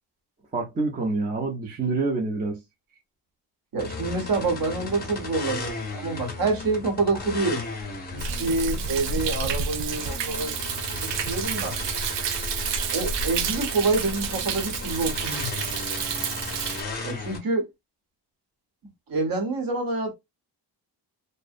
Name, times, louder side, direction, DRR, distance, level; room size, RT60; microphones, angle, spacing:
voice 1, 0.5-2.6, right 3 dB, 20° right, 0.4 m, -27 dB
voice 2, 3.7-7.6 8.1-11.8 12.9-15.6 17.0-17.6 19.1-20.1, right 3 dB, 55° right, 1.0 m, -27 dB
sound 1, 3.8-17.4, left 3 dB, 25° left, 0.6 m, -35 dB
Thunder, 8.2-16.8, right 6 dB, 85° right, 0.5 m, -30 dB
2.6 x 2.0 x 2.4 m
wide cardioid pair, 155°, 42 cm